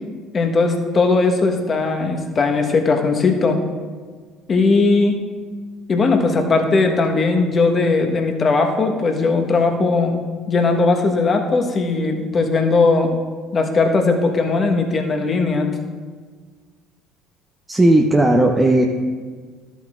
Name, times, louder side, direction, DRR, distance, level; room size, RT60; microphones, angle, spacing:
voice 1, 0.3-3.6 4.5-5.2 5.9-10.2 10.5-13.1 13.5-15.7, left 3 dB, 35° left, 4 dB, 1.3 m, -18 dB
voice 2, 17.7-18.8, right 1 dB, 15° right, 1 dB, 0.7 m, -15 dB
13.5 x 8.3 x 2.5 m, 1.5 s
hypercardioid pair, 55°, 0 cm